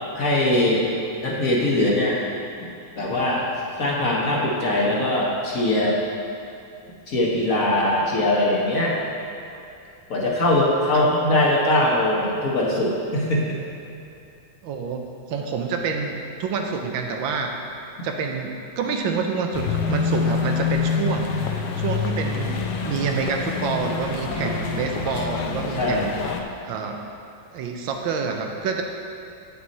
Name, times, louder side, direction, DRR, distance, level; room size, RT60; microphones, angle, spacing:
voice 1, 0.1-0.9 1.2-2.2 3.0-3.5 3.8-6.0 7.1-8.9 10.1-13.6 25.7-26.3, left 1 dB, 50° left, -4 dB, 1.4 m, -21 dB
voice 2, 14.6-17.5 18.0-27.0 27.5-28.8, right 5 dB, 85° right, 3 dB, 1.5 m, -28 dB
sound 1, 19.5-26.4, left 6 dB, 70° left, 1.1 m, -26 dB
8.7 x 6.4 x 4.1 m, 2.7 s
omnidirectional pair, 2.1 m